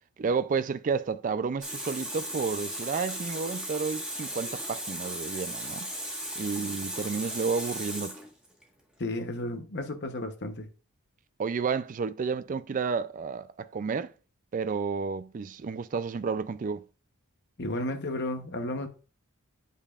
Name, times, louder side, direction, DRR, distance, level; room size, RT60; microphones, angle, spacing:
voice 1, 0.2-5.9 6.4-8.2 11.4-14.1 14.5-16.8, right 5 dB, 35° right, 0.3 m, -31 dB
Water tap faucet, 1.6-8.6, right 1 dB, 5° right, 1.3 m, -36 dB
voice 2, 9.0-10.7 17.6-18.9, left 1 dB, 50° left, 0.9 m, -33 dB
8.4 x 5.3 x 2.4 m
head